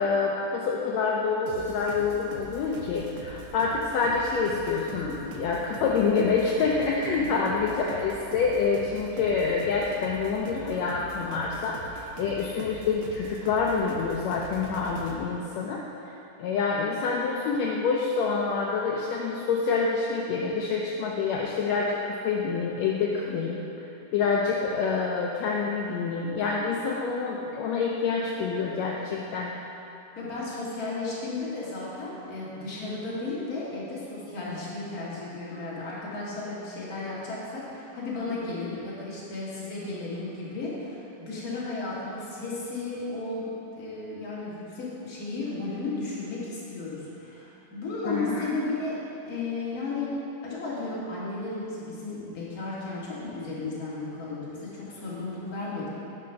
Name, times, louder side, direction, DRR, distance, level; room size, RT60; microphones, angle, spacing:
voice 1, 0.0-15.8 16.4-23.6 24.1-29.5 48.1-48.5, left 5 dB, 75° left, -2 dB, 1.6 m, -27 dB
sound 1, 1.5-15.2, right 4 dB, 80° right, 1.3 m, -43 dB
voice 2, 30.2-43.5 43.7-49.0 49.3-50.1 50.4-55.9, left 3 dB, 30° left, -8 dB, 2.0 m, -34 dB
9.7 x 5.1 x 5.7 m, 2.9 s
omnidirectional pair, 3.7 m